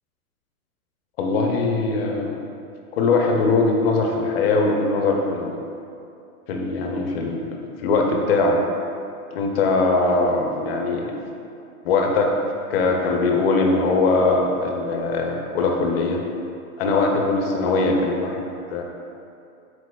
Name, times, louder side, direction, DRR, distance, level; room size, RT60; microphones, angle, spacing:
voice 1, 1.2-2.4 2.9-5.6 6.5-8.6 9.3-11.1 11.8-12.3 12.7-16.2 16.8-18.8, left 3 dB, 45° left, 1 dB, 0.5 m, -21 dB
4.8 x 4.1 x 2.2 m, 2.6 s
hypercardioid pair, 145°, 45 cm